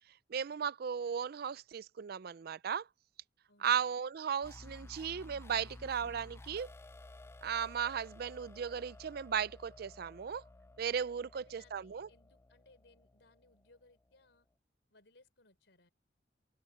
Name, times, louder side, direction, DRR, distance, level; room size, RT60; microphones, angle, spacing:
voice 1, 0.3-2.9 3.6-6.7 7.4-10.4 10.8-12.1, right 7 dB, 60° right, 0.4 m, -36 dB
voice 2, 3.5-4.0 11.3-14.5 14.9-15.9, left 2 dB, 85° left, 3.9 m, -66 dB
sound 1, 4.4-14.0, left 2 dB, 15° left, 0.4 m, -54 dB
open air
head